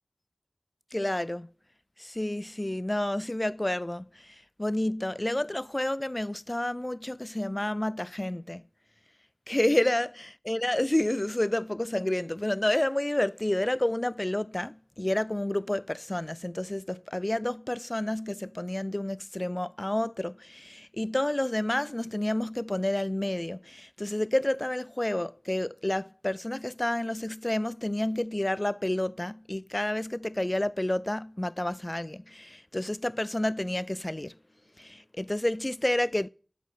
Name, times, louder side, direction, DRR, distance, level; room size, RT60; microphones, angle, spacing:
voice 1, 0.9-1.5 2.0-8.6 9.5-34.4 34.8-36.3, left 1 dB, 30° left, 0.3 m, -30 dB
9.6 x 7.5 x 4.0 m
wide cardioid pair, 45°, 0 cm